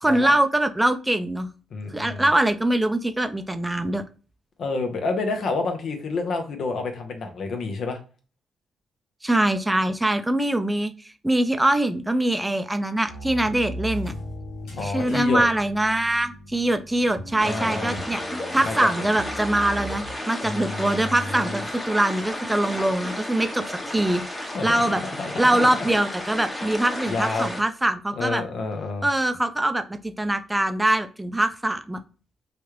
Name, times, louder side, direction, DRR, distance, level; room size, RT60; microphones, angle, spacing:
voice 1, 0.0-1.5 1.9-4.0 9.2-10.9 11.2-14.1 14.8-18.2 18.5-25.0 25.4-28.4 29.0-32.0, right 1 dB, 10° right, 9 dB, 0.4 m, -23 dB
voice 2, 1.7-2.2 4.6-8.0 14.8-15.4 17.4-18.0 18.6-18.9 20.4-21.6 24.5-24.7 25.1-25.5 25.8-25.9 26.7-26.8 27.1-27.5 28.2-29.1, left 3 dB, 65° left, 5 dB, 0.7 m, -29 dB
sound 1, 13.0-20.1, equal, 90° left, 1.2 m, -38 dB
sound 2, 17.4-27.6, left 1 dB, 20° left, 0.9 m, -33 dB
3.0 x 2.4 x 3.1 m, 0.36 s
supercardioid pair, 65°, 0 cm